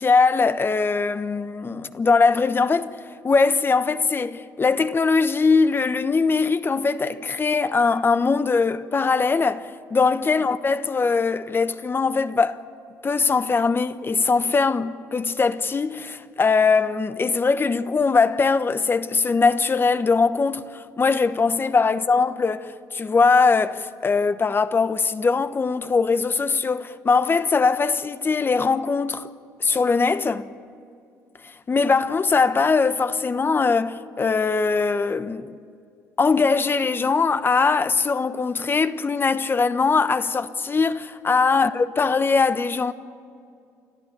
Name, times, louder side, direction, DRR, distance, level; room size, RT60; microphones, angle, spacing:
voice 1, 0.0-3.0 3.2-12.6 13.0-29.3 29.6-30.5 31.4-35.6 36.2-42.9, left 4 dB, 30° left, 1.1 m, -21 dB
29.5 x 13.0 x 9.3 m
supercardioid pair, 70°, 7 cm